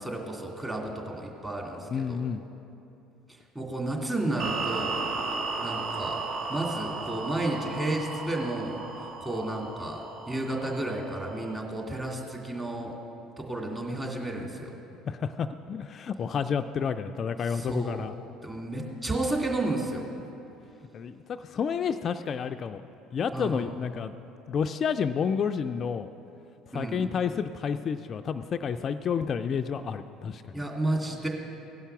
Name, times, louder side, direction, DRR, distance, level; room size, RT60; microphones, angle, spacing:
voice 1, 0.0-2.2 3.5-5.1 5.6-6.2 6.5-8.8 9.2-12.9 13.4-14.7 17.5-18.1 18.4-20.1 23.3-23.7 26.7-27.1 30.5-31.3, right 2 dB, 15° right, -1 dB, 2.4 m, -32 dB
voice 2, 1.9-2.4 15.1-18.1 20.9-22.8 23.1-24.1 24.5-26.1 26.7-30.6, left 6 dB, 45° left, 8 dB, 0.3 m, -30 dB
sound 1, 4.4-11.6, right 3 dB, 55° right, 1.1 m, -35 dB
16.5 x 5.6 x 5.9 m, 2.8 s
hypercardioid pair, 70°, 0 cm